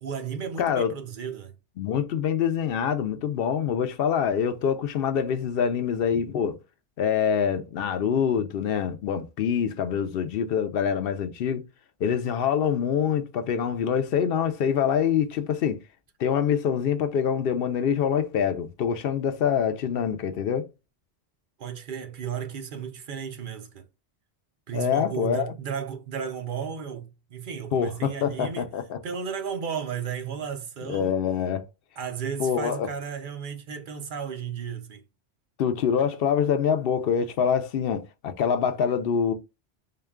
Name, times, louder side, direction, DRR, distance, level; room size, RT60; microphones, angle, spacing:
voice 1, 0.0-1.6 21.6-23.9 24.7-28.7 29.0-31.1 32.0-35.0, right 7 dB, 55° right, 0.8 m, -34 dB
voice 2, 0.6-0.9 1.8-6.6 7.0-11.6 12.0-15.8 16.2-20.7 24.7-25.5 27.7-29.0 30.9-31.7 32.4-32.9 35.6-39.3, left 7 dB, 65° left, 0.7 m, -25 dB
3.7 x 2.2 x 3.5 m
omnidirectional pair, 1.1 m